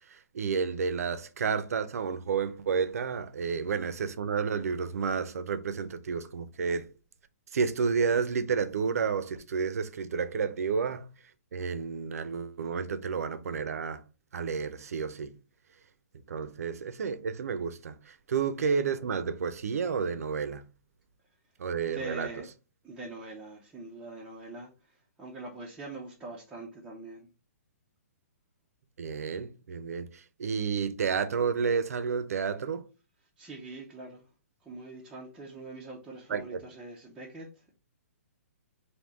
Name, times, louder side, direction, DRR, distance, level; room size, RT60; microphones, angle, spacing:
voice 1, 0.1-6.9 7.5-11.1 11.5-14.0 14.3-15.4 16.1-20.6 21.6-22.3 29.0-32.9 36.3-36.4, right 6 dB, 70° right, 0.6 m, -31 dB
voice 2, 21.9-22.5 22.8-27.3 33.4-34.3 34.6-37.7, right 2 dB, 5° right, 0.5 m, -43 dB
3.6 x 2.7 x 3.9 m
hypercardioid pair, 165°, 8 cm